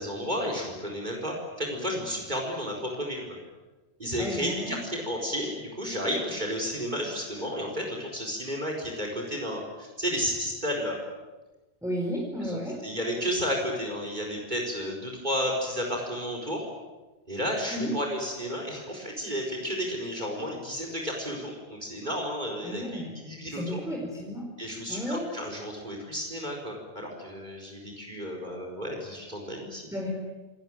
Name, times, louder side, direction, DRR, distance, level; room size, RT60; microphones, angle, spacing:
voice 1, 0.0-3.2 4.0-11.0 12.4-16.6 17.3-23.8 24.6-29.8, equal, 45° right, 0 dB, 4.8 m, -32 dB
voice 2, 4.2-4.7 11.8-12.8 17.7-17.9 22.6-23.1 23.5-24.4 24.9-25.2 29.9-30.1, equal, 5° right, -1 dB, 4.3 m, -33 dB
27.0 x 19.5 x 9.0 m, 1.2 s
omnidirectional pair, 1.1 m